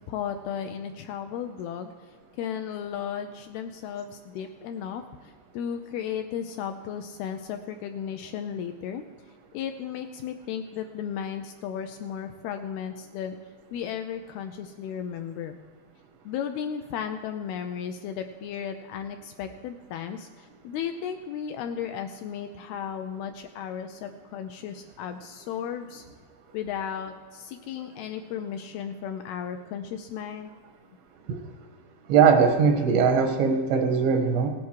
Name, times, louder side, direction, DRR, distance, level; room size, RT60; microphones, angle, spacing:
voice 1, 0.1-1.9 2.4-9.0 9.5-13.4 13.7-15.6 16.3-26.0 26.5-30.6, left 8 dB, 80° left, 6 dB, 2.3 m, -35 dB
voice 2, 32.1-34.5, right 6 dB, 85° right, 3 dB, 3.9 m, -20 dB
17.5 x 10.5 x 4.7 m, 1.5 s
omnidirectional pair, 5.0 m